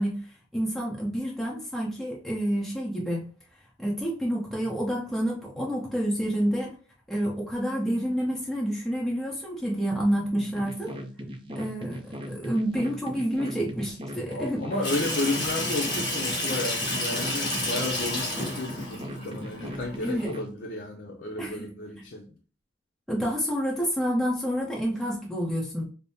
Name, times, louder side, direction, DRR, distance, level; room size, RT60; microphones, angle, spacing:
voice 1, 0.0-3.3 3.8-6.8 7.1-10.9 11.5-14.7 20.0-20.4 21.4-21.7 23.1-25.8, equal, ahead, 0.8 m, -28 dB
sound 1, 10.6-20.5, equal, 30° right, 0.6 m, -38 dB
voice 2, 14.3-22.4, left 2 dB, 50° left, 0.6 m, -33 dB
Water tap faucet / Sink (filling or washing), 14.8-20.3, left 1 dB, 25° left, 1.6 m, -31 dB
5.2 x 2.1 x 2.7 m
head